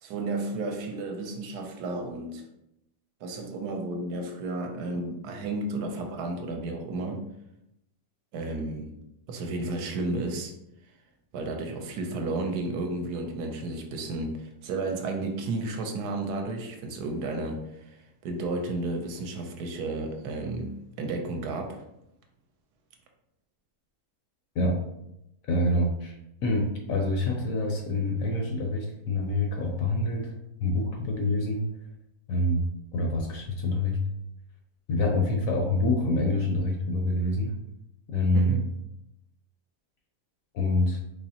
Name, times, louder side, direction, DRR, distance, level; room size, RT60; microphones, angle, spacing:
voice 1, 0.0-2.4 3.2-7.3 8.3-8.9 9.3-10.5 11.3-21.8 38.3-38.7, right 2 dB, 80° right, 3 dB, 1.1 m, -32 dB
voice 2, 25.4-26.2 26.4-30.3 30.6-31.6 32.3-34.0 34.9-37.5 38.1-38.6 40.5-41.0, left 1 dB, 70° left, 2 dB, 0.8 m, -26 dB
4.0 x 3.0 x 2.7 m, 0.83 s
omnidirectional pair, 1.8 m